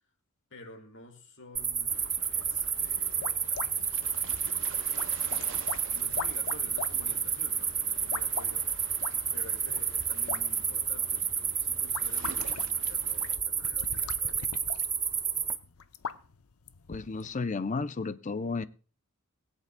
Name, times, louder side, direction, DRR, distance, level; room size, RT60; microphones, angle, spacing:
voice 1, 0.5-3.6 4.4-8.7 9.3-14.5, left 1 dB, 60° left, 2.2 m, -51 dB
sound 1, 1.5-15.6, right 7 dB, 15° right, 0.6 m, -31 dB
sound 2, 1.9-13.4, right 6 dB, 60° right, 0.6 m, -49 dB
sound 3, 2.8-17.4, left 6 dB, 85° left, 0.6 m, -43 dB
voice 2, 16.9-18.6, left 4 dB, 35° left, 0.5 m, -33 dB
21.5 x 8.3 x 2.2 m
head